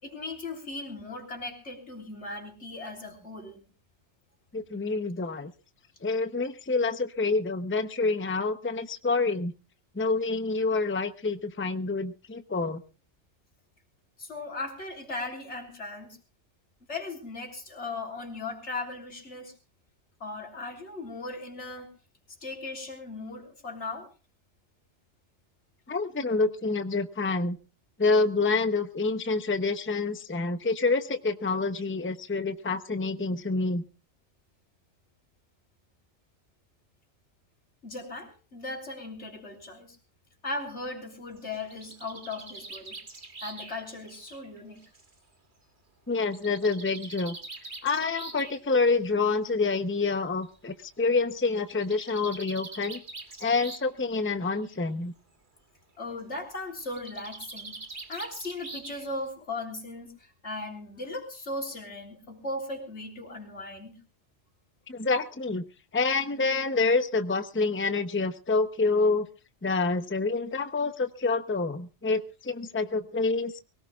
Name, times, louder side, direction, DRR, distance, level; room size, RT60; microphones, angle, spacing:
voice 1, 0.0-3.7 14.2-16.2 16.9-19.5 20.2-21.9 22.4-24.1 37.8-40.0 40.4-43.0 43.4-44.8 56.0-57.8 58.1-64.0, left 2 dB, 85° left, 1 dB, 3.8 m, -38 dB
voice 2, 4.5-5.5 6.0-9.5 9.9-12.8 25.9-27.6 28.0-33.8 46.1-47.4 47.8-53.0 53.4-55.1 64.9-65.6 65.9-69.3 69.6-73.6, left 3 dB, 10° left, 9 dB, 0.7 m, -27 dB
Bird, 41.4-45.1 46.2-48.6 49.7-49.8 50.1-50.2 50.4-50.5 51.6-54.0 54.3-54.8 56.8-59.3, right 3 dB, 45° right, 2.0 m, -44 dB
23.5 x 17.5 x 2.4 m, 0.32 s
omnidirectional pair, 1.2 m